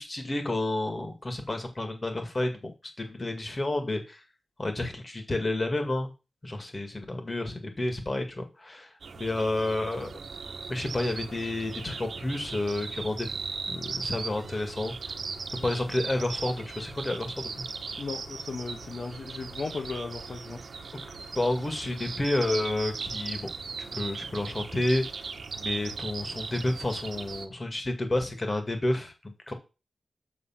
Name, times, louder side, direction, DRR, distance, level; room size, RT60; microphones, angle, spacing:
voice 1, 0.0-2.7 3.0-4.2 4.6-6.1 6.4-8.9 9.1-10.1 10.7-13.4 13.7-14.9 15.5-17.5 21.3-23.5 23.9-25.0 25.6-29.1 29.5-29.6, left 1 dB, 30° left, 6 dB, 1.9 m, -30 dB
sound 1, 9.0-27.5, right 4 dB, 70° right, 1.1 m, -38 dB
voice 2, 18.0-20.7, left 4 dB, 60° left, 3 dB, 1.1 m, -36 dB
6.9 x 6.5 x 5.8 m, 0.30 s
wide cardioid pair, 115°, 0 cm